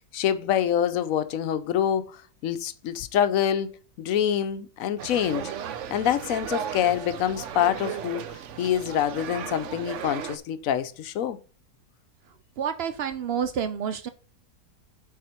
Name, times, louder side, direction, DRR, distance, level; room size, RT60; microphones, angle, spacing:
voice 1, 0.1-5.5 5.9-8.2 8.6-11.4, left 9 dB, 65° left, 1.0 m, -26 dB
sound 1, 5.0-10.4, right 8 dB, 60° right, 0.9 m, -35 dB
voice 2, 12.6-14.1, right 8 dB, 85° right, 0.5 m, -29 dB
8.5 x 4.3 x 4.4 m
omnidirectional pair, 1.7 m